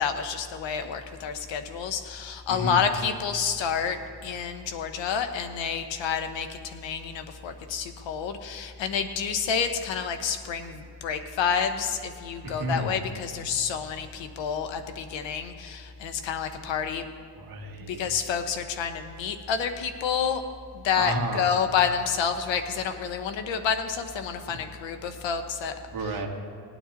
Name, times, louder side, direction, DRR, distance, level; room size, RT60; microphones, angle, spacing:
voice 1, 0.0-17.1 17.9-20.4 20.7-25.7, left 7 dB, 80° left, 8 dB, 1.1 m, -29 dB
voice 2, 2.5-2.9 12.4-13.0 17.4-18.0 21.0-21.5 24.4-24.6 25.9-26.3, right 1 dB, 50° right, 1 dB, 1.8 m, -31 dB
18.5 x 9.2 x 4.0 m, 2.4 s
cardioid pair, 125°, 44 cm